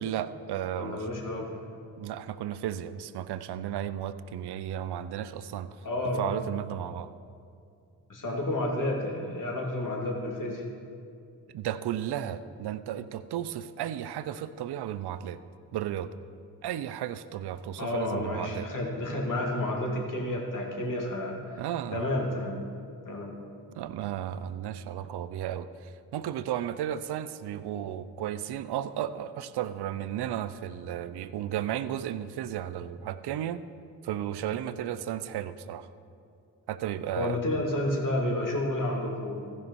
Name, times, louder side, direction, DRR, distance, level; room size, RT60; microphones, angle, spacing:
voice 1, 0.0-1.1 2.0-5.7 6.2-7.1 11.5-15.4 15.7-16.1 16.6-18.7 21.6-22.1 23.8-33.6 34.0-35.9 36.7-37.4, right 11 dB, 65° right, 13 dB, 0.6 m, -34 dB
voice 2, 0.8-1.6 5.8-6.3 8.1-10.6 17.8-21.6 21.9-22.6 23.1-23.3 37.1-39.5, left 1 dB, 45° left, -1 dB, 2.7 m, -30 dB
15.0 x 5.5 x 5.5 m, 2.4 s
hypercardioid pair, 45°, 44 cm